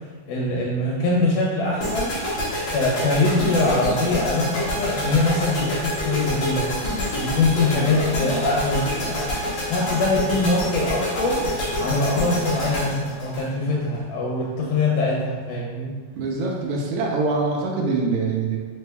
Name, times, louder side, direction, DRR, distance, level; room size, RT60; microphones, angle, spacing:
voice 1, 0.0-2.2 2.7-6.7 7.2-9.3 9.7-16.0, left 2 dB, 90° left, -4 dB, 2.2 m, -23 dB
sound 1, 1.8-14.0, equal, 65° left, 1.1 m, -27 dB
voice 2, 16.2-18.6, right 3 dB, 80° right, -1 dB, 1.7 m, -24 dB
5.1 x 2.2 x 3.3 m, 1.4 s
omnidirectional pair, 3.6 m